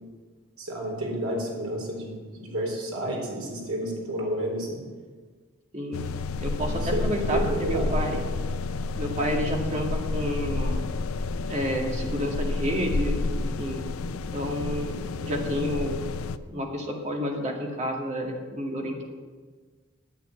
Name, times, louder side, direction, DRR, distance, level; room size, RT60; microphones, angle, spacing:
voice 1, 0.6-4.8 6.6-7.9, right 1 dB, 85° right, -1 dB, 4.0 m, -31 dB
sound 1, 5.9-16.4, left 3 dB, 75° left, 0.5 m, -30 dB
voice 2, 6.4-8.2 9.0-10.8 11.5-13.9 14.3-16.0 16.5-19.1, equal, 30° right, 1 dB, 2.0 m, -30 dB
10.0 x 8.2 x 9.2 m, 1.4 s
head